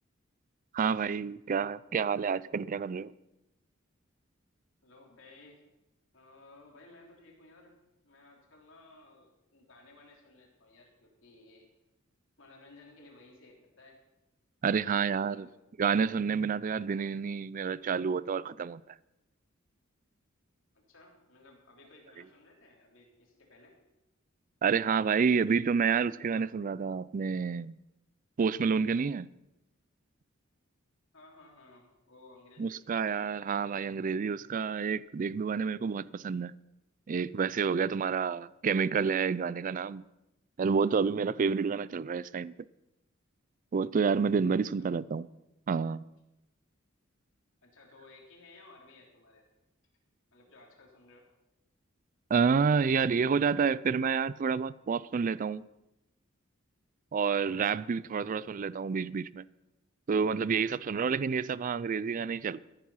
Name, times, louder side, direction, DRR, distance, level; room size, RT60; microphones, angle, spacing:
voice 1, 0.7-3.1 14.6-15.5 15.8-18.8 24.6-27.8 28.4-29.3 32.6-36.5 37.1-40.0 40.6-42.5 43.7-45.3 45.7-46.0 52.3-55.7 57.1-59.4 60.1-62.6, right 5 dB, 40° right, 0.4 m, -29 dB
voice 2, 4.8-5.6 6.1-7.7 8.0-11.7 12.4-14.0 14.6-15.5 20.7-23.8 31.1-32.8 44.7-44.9 47.6-49.4 50.3-51.3 60.9-61.0, left 2 dB, 70° left, 3.5 m, -57 dB
14.0 x 10.5 x 5.7 m
head